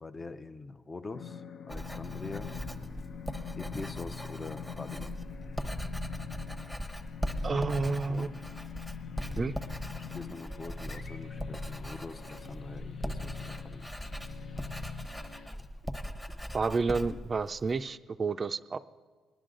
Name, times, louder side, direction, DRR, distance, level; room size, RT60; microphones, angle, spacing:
voice 1, 0.0-2.5 3.6-5.2 8.1-8.3 10.1-13.9, left 3 dB, 25° left, 9 dB, 0.6 m, -44 dB
sound 1, 1.1-15.5, left 7 dB, 60° left, 0.8 m, -43 dB
Writing, 1.7-17.8, equal, 5° left, 0.9 m, -40 dB
voice 2, 7.4-8.3 9.4-9.5 16.5-18.8, right 4 dB, 35° right, 13 dB, 0.4 m, -30 dB
sound 2, 9.9-10.1 10.8-11.5 12.3-12.9 14.4-14.7 15.2-16.3 16.8-17.2, left 2 dB, 75° left, 1.7 m, -54 dB
19.5 x 11.0 x 3.8 m, 1.4 s
cardioid pair, 90°, 0 cm